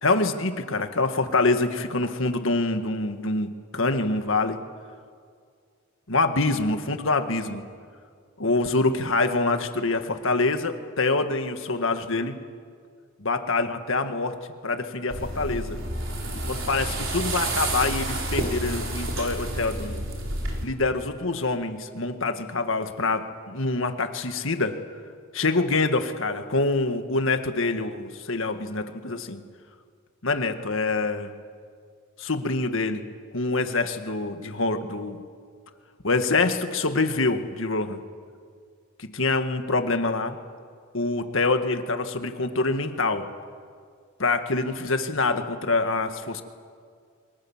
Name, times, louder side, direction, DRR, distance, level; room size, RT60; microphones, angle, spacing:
voice 1, 0.0-3.5 3.7-4.6 6.1-7.6 8.4-12.4 13.2-14.4 14.6-15.8 16.5-20.0 20.6-24.8 25.3-29.4 30.2-31.3 32.2-33.1 33.3-35.2 36.0-38.0 39.0-40.4 40.9-43.3 44.2-46.4, left 3 dB, 65° left, 7 dB, 1.8 m, -25 dB
sound 1, 15.1-20.7, right 1 dB, 65° right, 4.5 m, -30 dB
28.5 x 24.0 x 7.4 m, 2.1 s
head